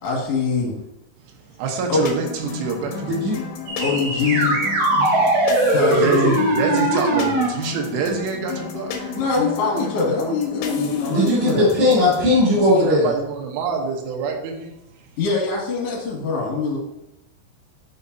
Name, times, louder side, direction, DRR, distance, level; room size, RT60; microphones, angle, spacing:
voice 1, 0.0-0.7 1.9-2.1 3.8-4.6 5.7-6.3 9.2-11.7 15.2-16.8, left 4 dB, 45° left, -3 dB, 2.1 m, -23 dB
voice 2, 1.2-3.2 3.7-3.8 6.0-9.2 10.8-11.3 12.5-15.1, right 5 dB, 80° right, 2 dB, 3.5 m, -27 dB
sound 1, 2.1-12.3, left 5 dB, 80° left, 2.9 m, -33 dB
sound 2, 3.7-7.5, right 2 dB, 60° right, 3.1 m, -20 dB
voice 3, 11.1-13.1, left 1 dB, 35° right, -14 dB, 3.1 m, -17 dB
11.0 x 4.8 x 2.7 m, 0.90 s
omnidirectional pair, 5.7 m